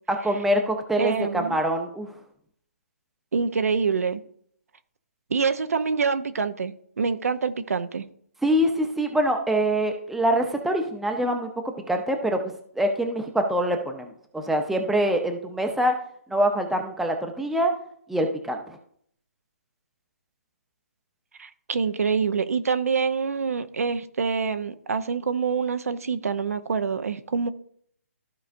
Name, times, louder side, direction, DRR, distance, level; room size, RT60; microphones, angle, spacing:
voice 1, 0.1-2.1 8.4-11.5 11.9-15.9 16.3-17.7 18.1-18.8, right 1 dB, ahead, 0.7 m, -24 dB
voice 2, 1.0-1.6 3.3-4.2 5.3-8.0 21.4-27.5, right 5 dB, 75° right, 0.7 m, -26 dB
14.0 x 4.9 x 2.6 m
hypercardioid pair, 150°, 8 cm